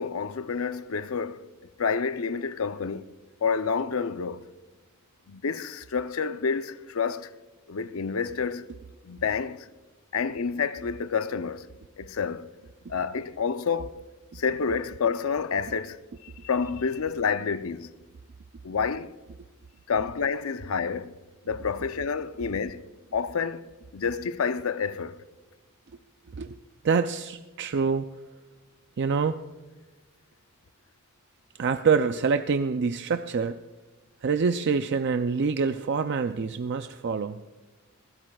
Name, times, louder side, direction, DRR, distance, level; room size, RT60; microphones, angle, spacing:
voice 1, 0.0-1.5 1.8-3.0 3.4-4.5 5.3-7.3 7.7-8.7 9.0-9.7 10.1-11.7 12.0-12.5 12.9-14.0 14.3-17.9 18.6-19.1 19.9-21.2 21.5-25.2, left 5 dB, 75° left, 0.6 m, -29 dB
voice 2, 26.8-28.1 29.0-29.4 31.6-33.6 34.2-37.4, right 5 dB, 55° right, 0.4 m, -26 dB
20.0 x 15.5 x 2.3 m
head